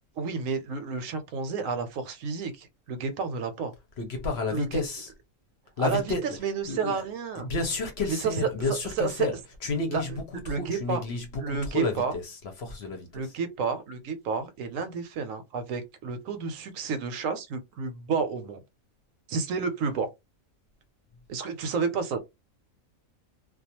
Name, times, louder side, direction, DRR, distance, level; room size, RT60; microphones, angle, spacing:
voice 1, 0.2-3.7 4.5-4.7 5.8-6.0 6.4-7.5 8.1-8.5 9.0-9.1 9.9-10.0 10.5-11.0 11.4-12.1 13.1-18.6 19.3-20.1 21.3-22.2, right 5 dB, 75° right, 0.9 m, -30 dB
voice 2, 4.0-5.1 5.8-6.4 6.7-7.0 7.4-13.3, left 3 dB, 55° left, 0.8 m, -31 dB
2.3 x 2.3 x 2.8 m
omnidirectional pair, 1.5 m